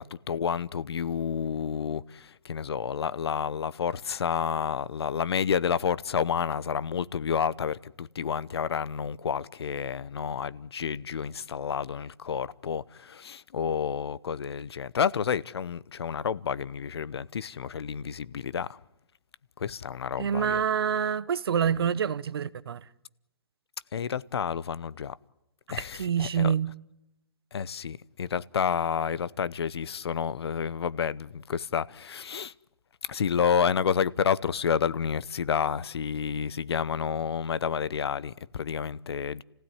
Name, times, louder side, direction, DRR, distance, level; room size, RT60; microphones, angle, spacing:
voice 1, 0.0-18.8 19.6-20.6 21.6-21.8 23.9-25.2 25.7-26.5 27.5-32.5 33.0-39.4, left 7 dB, 70° left, 0.8 m, -30 dB
voice 2, 20.2-22.8 26.0-26.7, right 7 dB, 60° right, 0.9 m, -26 dB
29.5 x 16.0 x 9.8 m
hypercardioid pair, 160°, 14 cm